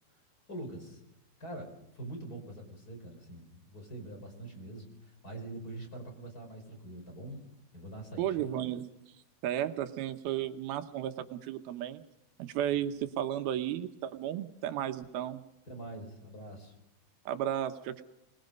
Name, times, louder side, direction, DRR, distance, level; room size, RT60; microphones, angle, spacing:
voice 1, 0.5-1.0 1.4-7.4 7.7-8.6 15.7-16.7, right 1 dB, 25° left, 4 dB, 5.3 m, -44 dB
voice 2, 8.2-8.9 9.4-12.0 12.4-15.4 17.3-18.0, right 11 dB, 85° right, 8 dB, 3.0 m, -34 dB
26.0 x 20.0 x 5.3 m, 0.86 s
omnidirectional pair, 4.3 m